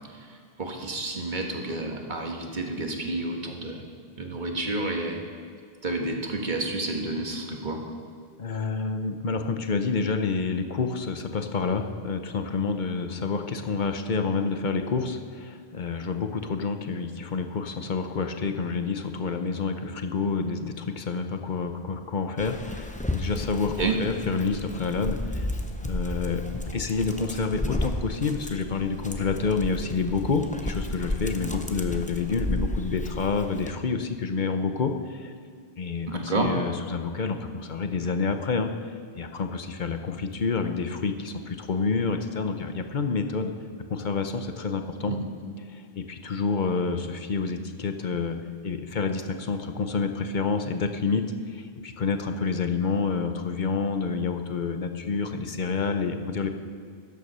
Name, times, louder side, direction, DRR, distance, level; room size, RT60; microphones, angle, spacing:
voice 1, 0.6-3.8 4.2-5.2 5.8-7.8 23.8-24.0 36.1-36.5 45.1-45.3, right 2 dB, 45° right, 2 dB, 1.6 m, -30 dB
voice 2, 8.4-25.5 25.8-26.4 26.7-35.3 35.8-38.7 39.1-43.5 43.9-45.1 45.7-48.4 48.6-56.5, left 4 dB, 50° left, 7 dB, 0.9 m, -28 dB
Dog, 22.4-33.7, left 1 dB, 10° left, 0.6 m, -33 dB
13.5 x 9.6 x 5.5 m, 2.1 s
omnidirectional pair, 1.1 m